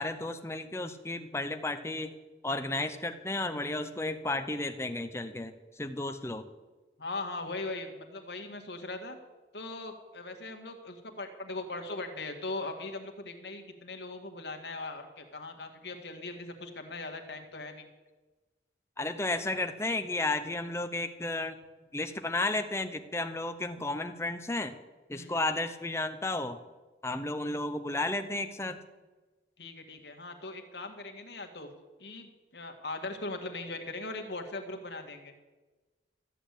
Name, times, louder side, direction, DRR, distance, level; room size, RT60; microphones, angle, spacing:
voice 1, 0.0-2.2 2.4-6.5 19.0-21.6 21.9-24.8 25.1-26.6 27.0-28.8, left 2 dB, 15° left, 8 dB, 0.8 m, -33 dB
voice 2, 7.0-9.2 9.5-17.9 25.1-25.4 29.6-31.7 32.0-35.3, left 2 dB, 70° left, 4 dB, 1.8 m, -40 dB
14.0 x 8.2 x 8.4 m, 1.2 s
head